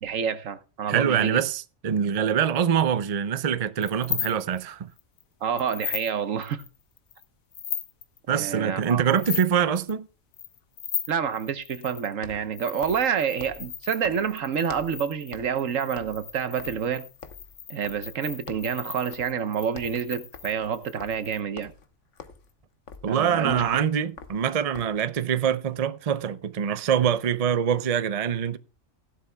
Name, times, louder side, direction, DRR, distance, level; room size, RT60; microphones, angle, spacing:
voice 1, 0.0-1.4 5.4-6.6 8.3-9.0 11.1-17.0 17.7-21.7 23.1-23.6, right 7 dB, 70° right, 1.4 m, -28 dB
voice 2, 0.9-4.9 8.3-10.1 23.0-28.6, right 8 dB, 45° right, 0.5 m, -24 dB
sound 1, 3.8-4.6 5.0-5.2 5.6-6.1 6.4-7.2 7.5-8.2 8.8-9.5 9.8-9.9 10.3-12.1 12.5-21.4, left 9 dB, 90° left, 1.5 m, -37 dB
sound 2, 12.1-15.0 15.3-15.6 15.9-18.2 18.5-18.8 19.1-19.4 19.7-25.1, left 5 dB, 65° left, 1.4 m, -46 dB
16.5 x 11.5 x 2.3 m
omnidirectional pair, 1.4 m